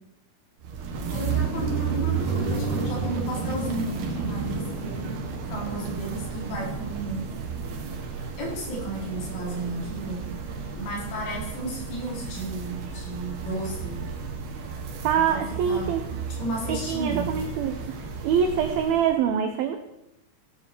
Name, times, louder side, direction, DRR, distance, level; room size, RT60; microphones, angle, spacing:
sound 1, 0.6-19.1, right 5 dB, 65° right, 3.2 m, -32 dB
voice 1, 1.1-4.6 5.5-7.3 8.4-10.3 10.7-14.0 15.1-17.3, right 1 dB, 90° left, -4 dB, 6.7 m, -33 dB
voice 2, 15.0-16.0 16.7-19.8, right 7 dB, 90° right, 7 dB, 2.1 m, -25 dB
17.0 x 9.5 x 4.6 m, 0.87 s
omnidirectional pair, 5.4 m